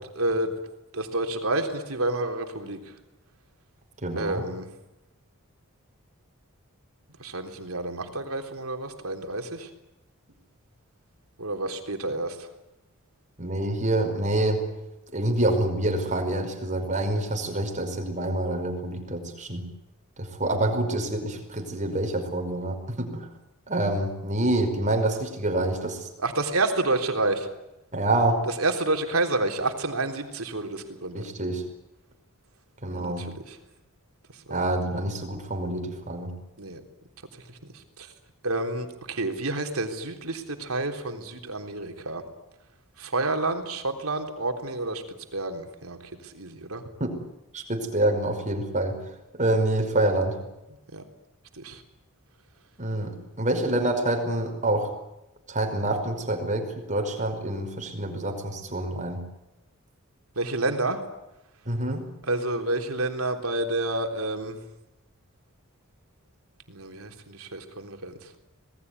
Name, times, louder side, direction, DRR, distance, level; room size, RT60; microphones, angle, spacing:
voice 1, 0.2-0.5 0.9-2.8 4.2-4.7 7.2-9.7 11.4-12.5 26.2-27.5 28.6-31.3 32.9-33.6 34.5-34.6 36.6-36.8 37.5-38.1 38.4-42.2 43.0-45.0 45.3-46.8 50.9-51.0 51.6-51.8 60.4-61.0 62.3-64.6 66.7-68.3, right 2 dB, 75° right, 5 dB, 3.6 m, -29 dB
voice 2, 4.0-4.4 13.4-14.7 15.1-19.7 20.2-23.3 23.7-26.1 27.9-28.5 31.1-31.6 32.8-33.3 34.5-36.3 47.0-47.1 47.5-49.0 49.3-50.4 52.8-54.9 55.5-59.2 61.7-62.0, right 1 dB, 35° right, 5 dB, 5.3 m, -27 dB
26.5 x 20.0 x 9.6 m, 0.93 s
head